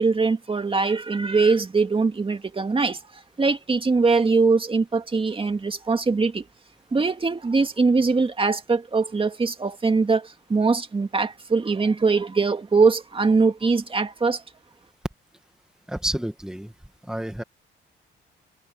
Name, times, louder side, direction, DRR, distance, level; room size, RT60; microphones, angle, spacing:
voice 1, 0.0-3.0 3.4-6.4 6.9-14.4, right 4 dB, 25° right, 2.1 m, -22 dB
voice 2, 15.9-16.7 17.0-17.4, right 1 dB, 5° right, 1.9 m, -29 dB
cardioid pair, 90°, 20 cm